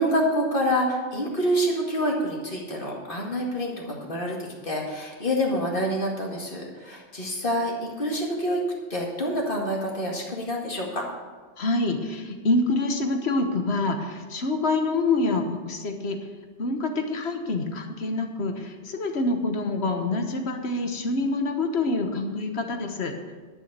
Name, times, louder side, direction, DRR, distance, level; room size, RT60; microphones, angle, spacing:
voice 1, 0.0-4.4 4.6-8.6 8.9-11.0, equal, 45° left, -1 dB, 2.3 m, -27 dB
voice 2, 11.6-16.2 16.6-23.1, left 2 dB, 60° left, 5 dB, 1.4 m, -26 dB
11.5 x 7.2 x 6.7 m, 1.4 s
omnidirectional pair, 1.2 m